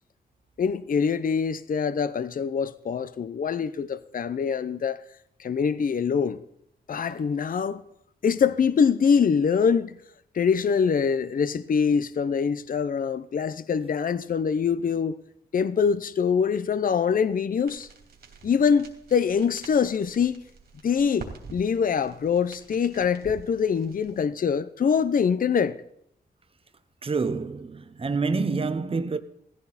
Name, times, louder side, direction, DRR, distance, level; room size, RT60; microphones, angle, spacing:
voice 1, 0.6-5.0 5.4-6.4 6.9-7.8 8.2-10.0 10.3-15.2 15.5-17.9 18.4-20.4 20.8-25.8, left 6 dB, 50° left, 0.7 m, -24 dB
sound 1, 17.7-24.2, right 4 dB, 65° right, 3.1 m, -46 dB
voice 2, 27.0-29.2, right 4 dB, 35° right, 0.9 m, -27 dB
16.5 x 15.0 x 4.1 m
wide cardioid pair, 95°, 18 cm